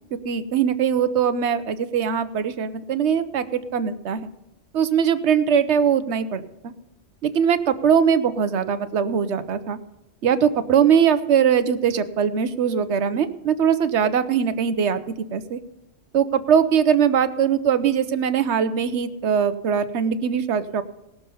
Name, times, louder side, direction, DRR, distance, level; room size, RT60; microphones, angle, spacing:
voice 1, 0.1-4.3 4.7-6.7 7.2-9.8 10.2-15.6 16.1-20.8, right 7 dB, 70° right, 12 dB, 1.1 m, -21 dB
18.5 x 7.0 x 5.4 m, 0.94 s
omnidirectional pair, 1.2 m